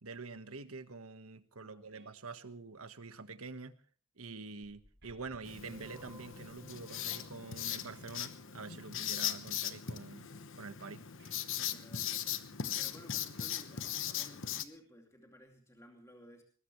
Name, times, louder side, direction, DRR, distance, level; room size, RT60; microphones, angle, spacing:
voice 1, 0.0-3.8 4.2-10.3 10.5-11.0, right 4 dB, 85° right, 11 dB, 1.4 m, -46 dB
voice 2, 1.6-2.1 11.5-12.4 12.8-16.4, equal, 15° left, 2 dB, 2.6 m, -57 dB
sound 1, 1.9-2.1 5.0-5.2 8.1-8.3 11.2-11.4, right 4 dB, 60° right, 5.5 m, -65 dB
sound 2, 4.6-9.5, right 1 dB, 15° right, 4.9 m, -59 dB
Writing, 5.4-14.6, left 10 dB, 65° left, 1.1 m, -39 dB
20.5 x 20.5 x 3.2 m, 0.43 s
head